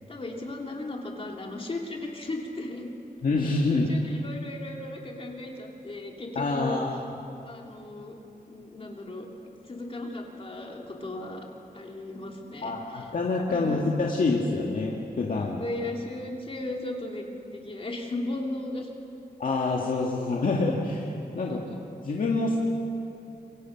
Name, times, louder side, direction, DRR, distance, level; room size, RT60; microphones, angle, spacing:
voice 1, 0.1-2.9 3.7-6.8 7.5-8.1 8.5-9.3 9.6-11.4 11.7-13.1 13.5-13.8 15.6-18.9 21.5-21.8, left 2 dB, 35° left, 0 dB, 2.9 m, -36 dB
voice 2, 3.2-3.9 6.4-7.0 12.6-15.6 19.4-21.7 22.0-22.6, left 3 dB, 60° left, -2 dB, 2.0 m, -27 dB
26.5 x 24.5 x 5.9 m, 2.8 s
wide cardioid pair, 170°, 16 cm